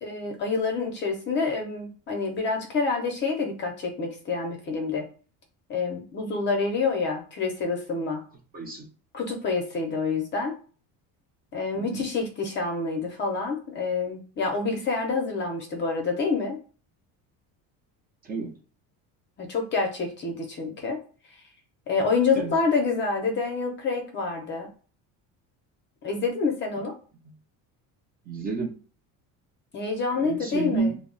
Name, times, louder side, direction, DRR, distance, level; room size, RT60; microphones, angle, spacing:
voice 1, 0.0-5.1 5.7-8.2 9.1-10.5 11.5-16.6 19.4-21.0 21.9-24.7 26.0-27.0 29.7-30.9, left 4 dB, 30° left, 2 dB, 0.5 m, -27 dB
voice 2, 8.5-8.9 11.7-12.0 18.2-18.5 22.4-22.6 28.3-28.7 30.2-30.9, right 4 dB, 25° right, 0 dB, 0.4 m, -30 dB
2.2 x 2.0 x 3.6 m, 0.39 s
cardioid pair, 145°, 38 cm